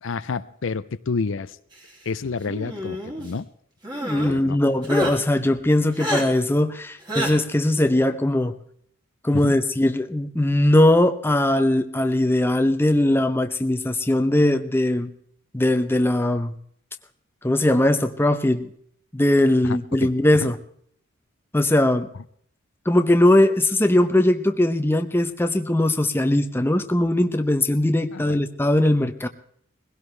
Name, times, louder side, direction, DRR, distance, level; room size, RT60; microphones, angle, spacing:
voice 1, 0.0-1.6 2.1-3.5 4.2-4.6 5.0-5.1 9.3-9.5 19.6-20.1 20.4-20.5 28.1-28.4, left 4 dB, 65° left, 14 dB, 0.5 m, -29 dB
sound 1, 2.5-3.3 3.8-4.3 4.8-5.1 6.0-6.2 7.1-7.3, equal, 20° right, 2.8 m, -28 dB
voice 2, 4.0-8.6 9.2-15.1 15.5-16.5 17.4-18.7 19.1-20.6 21.5-22.1 22.9-29.3, left 1 dB, 10° left, 8 dB, 0.7 m, -20 dB
21.0 x 16.5 x 3.3 m, 0.64 s
head